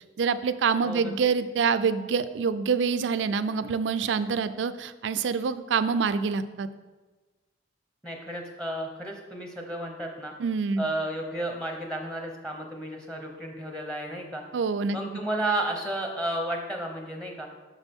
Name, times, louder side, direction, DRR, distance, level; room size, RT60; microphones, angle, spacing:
voice 1, 0.2-6.7 10.4-10.9 14.5-15.0, right 5 dB, 85° right, 12 dB, 0.4 m, -26 dB
voice 2, 0.8-1.3 8.0-10.3 10.8-14.4 14.9-17.5, right 1 dB, 5° left, 2 dB, 0.8 m, -32 dB
8.2 x 6.2 x 3.5 m, 1.2 s
head